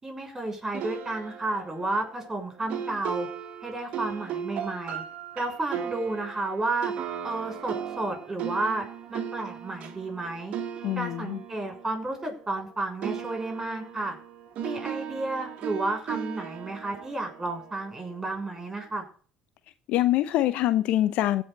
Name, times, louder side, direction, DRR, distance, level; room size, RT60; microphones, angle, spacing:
voice 1, 0.0-3.3 3.6-5.0 5.4-6.9 7.2-10.5 10.9-14.2 14.6-19.0, right 2 dB, 20° right, 6.3 m, -32 dB
sound 1, 0.7-12.7 13.0-18.2, right 8 dB, 60° right, 2.1 m, -37 dB
voice 2, 10.8-11.4 19.9-21.4, left 14 dB, 65° left, 0.8 m, -24 dB
16.0 x 5.7 x 6.6 m
hypercardioid pair, 65°, 2 cm